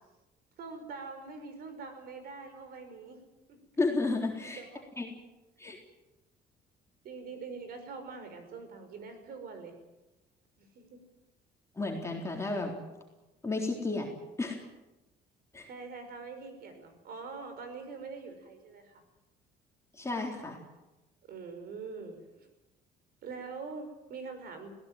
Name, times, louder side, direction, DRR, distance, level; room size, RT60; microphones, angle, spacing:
voice 1, 0.6-3.2 3.5-3.6 4.4-4.8 7.0-9.7 10.6-11.0 15.7-19.0 21.3-22.5 23.2-24.7, right 4 dB, 65° right, 8 dB, 5.6 m, -44 dB
voice 2, 3.8-4.6 5.0-5.1 5.6-5.8 11.7-12.7 13.4-14.1 14.4-14.6 15.5-15.7 19.9-20.6, left 3 dB, 15° left, 0 dB, 3.8 m, -32 dB
21.5 x 17.5 x 9.2 m, 1.0 s
cardioid pair, 110°, 17 cm